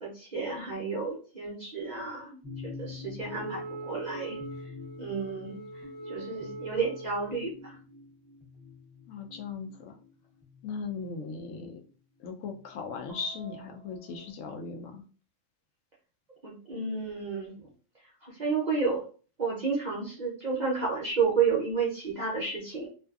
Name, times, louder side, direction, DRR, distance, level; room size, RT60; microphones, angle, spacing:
voice 1, 0.0-4.4 5.0-5.6 6.1-7.8 16.4-17.5 18.2-19.0 19.4-22.9, right 5 dB, 55° right, -3 dB, 0.5 m, -31 dB
sound 1, 2.4-11.6 12.4-14.3, left 4 dB, ahead, 0.6 m, -47 dB
Wind instrument woodwind instrument, 3.3-7.4, right 3 dB, 35° left, 0.9 m, -42 dB
voice 2, 9.1-10.0 10.6-11.8 12.2-15.0, left 5 dB, 75° left, 3 dB, 0.9 m, -38 dB
2.6 x 2.3 x 2.3 m, 0.38 s
omnidirectional pair, 1.4 m